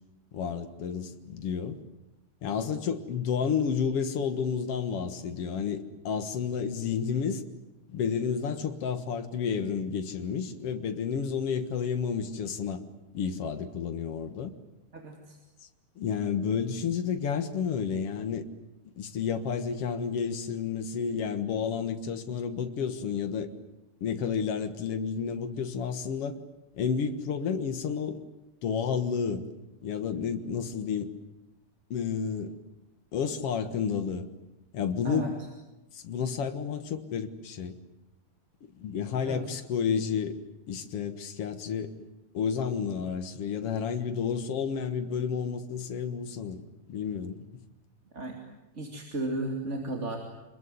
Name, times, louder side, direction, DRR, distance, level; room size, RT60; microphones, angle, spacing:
voice 1, 0.3-1.8 2.4-7.4 7.9-12.8 13.1-14.5 16.0-18.5 19.0-23.5 24.0-26.4 26.7-28.2 28.6-29.5 29.8-31.1 31.9-32.5 33.1-34.3 34.7-35.3 35.9-37.8 38.7-40.4 40.7-41.9 42.3-47.4, left 6 dB, 55° left, 9 dB, 2.3 m, -31 dB
voice 2, 14.9-15.4 35.0-35.3 39.2-39.5 48.1-48.4 48.7-50.2, right 2 dB, 25° right, 2 dB, 2.5 m, -34 dB
26.5 x 21.0 x 9.5 m, 1.0 s
omnidirectional pair, 3.3 m